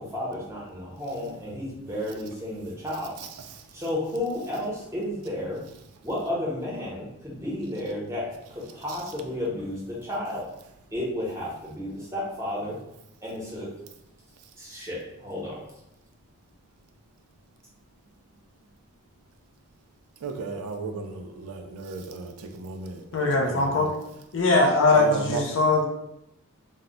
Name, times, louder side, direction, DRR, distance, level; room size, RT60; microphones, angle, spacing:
voice 1, 0.0-3.2 3.7-5.6 6.0-10.5 10.9-12.8 13.2-13.7 14.6-15.7, left 1 dB, 10° right, -6 dB, 0.7 m, -32 dB
voice 2, 20.2-23.9 24.9-25.4, right 4 dB, 85° right, 5 dB, 0.4 m, -35 dB
voice 3, 23.1-23.9 24.3-25.9, left 3 dB, 55° left, 0 dB, 0.5 m, -21 dB
2.1 x 2.0 x 3.7 m, 0.84 s
head